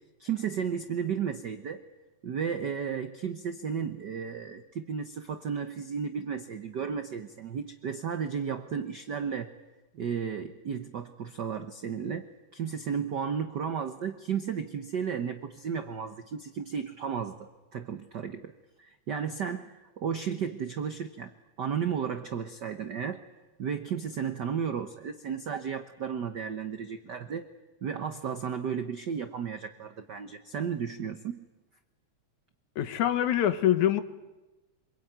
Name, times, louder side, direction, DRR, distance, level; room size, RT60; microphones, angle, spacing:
voice 1, 0.2-1.8 2.2-9.5 9.9-18.5 18.8-23.2 23.6-27.5 27.8-31.4, right 7 dB, 70° right, 9 dB, 1.0 m, -34 dB
voice 2, 32.8-34.0, left 11 dB, 80° left, 11 dB, 2.7 m, -24 dB
26.0 x 22.5 x 9.3 m, 1.1 s
omnidirectional pair, 3.3 m